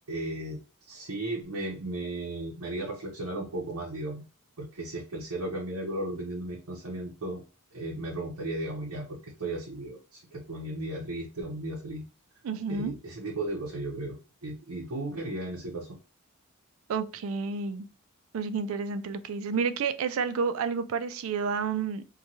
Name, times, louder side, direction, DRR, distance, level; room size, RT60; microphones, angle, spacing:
voice 1, 0.1-4.2 4.6-7.4 7.7-12.1 12.7-15.9, right 1 dB, 85° right, 0.7 m, -35 dB
voice 2, 12.4-12.9 16.9-17.9 18.3-22.0, right 5 dB, 70° right, 0.3 m, -30 dB
2.9 x 2.3 x 2.7 m
head